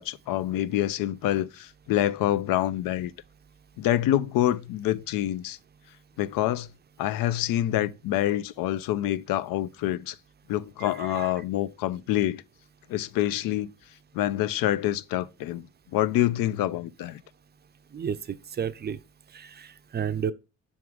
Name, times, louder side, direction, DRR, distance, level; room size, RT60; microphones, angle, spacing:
voice 1, 0.0-3.1 3.8-5.6 6.2-6.7 7.0-10.2 10.5-12.4 12.9-13.7 14.1-15.7 15.9-17.2, left 13 dB, 85° left, 0.5 m, -26 dB
voice 2, 10.8-11.3 17.9-19.0 19.3-20.3, right 7 dB, 30° right, 0.4 m, -32 dB
6.1 x 3.6 x 4.7 m
cardioid pair, 105°, 33 cm